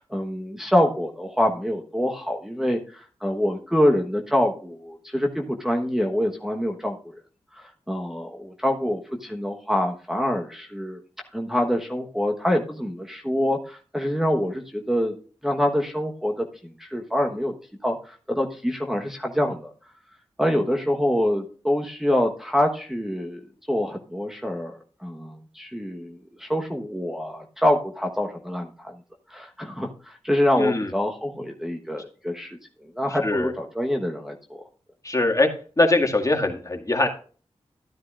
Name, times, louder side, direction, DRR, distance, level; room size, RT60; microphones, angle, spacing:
voice 1, 0.0-7.2 7.5-11.0 11.3-15.1 15.4-17.5 17.8-19.7 20.4-29.0 29.3-32.6 32.9-34.4, left 1 dB, 5° right, 0 dB, 1.2 m, -25 dB
voice 2, 30.6-30.9 33.2-33.5 35.0-35.5 35.8-37.1, left 2 dB, 30° left, 2 dB, 2.0 m, -22 dB
13.0 x 9.4 x 2.5 m, 0.40 s
cardioid pair, 50°, 11 cm